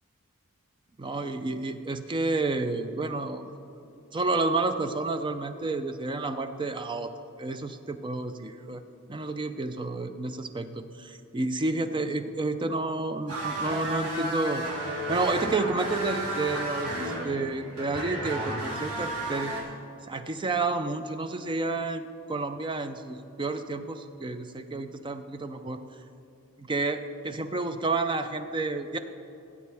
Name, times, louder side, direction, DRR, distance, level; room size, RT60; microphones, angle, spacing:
voice 1, 1.0-7.1 7.4-8.8 9.1-14.7 15.1-19.6 20.1-25.8 26.6-29.0, right 3 dB, 20° right, 9 dB, 0.4 m, -30 dB
sound 1, 13.3-19.6, right 1 dB, 80° right, 2.8 m, -33 dB
16.5 x 8.5 x 3.4 m, 2.6 s
head